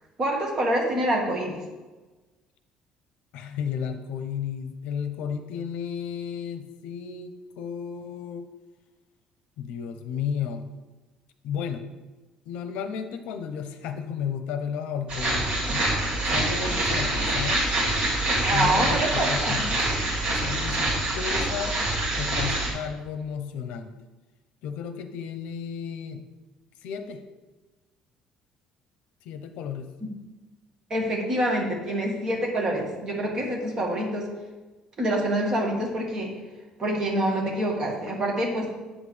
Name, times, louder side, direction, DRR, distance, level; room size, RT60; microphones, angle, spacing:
voice 1, 0.2-1.6 18.4-19.6 30.9-34.3 35.0-36.3 36.8-38.7, right 1 dB, 25° right, -1 dB, 1.7 m, -26 dB
voice 2, 3.3-8.5 9.6-10.7 11.4-11.8 12.5-15.9 16.3-17.7 18.5-20.0 20.4-21.8 22.2-23.9 24.6-26.2 26.8-27.2 29.2-29.9, left 7 dB, 75° left, 8 dB, 0.7 m, -33 dB
sound 1, 15.1-22.7, right 1 dB, 50° right, 2.3 m, -25 dB
8.9 x 7.4 x 3.3 m, 1.2 s
cardioid pair, 180°, 2 cm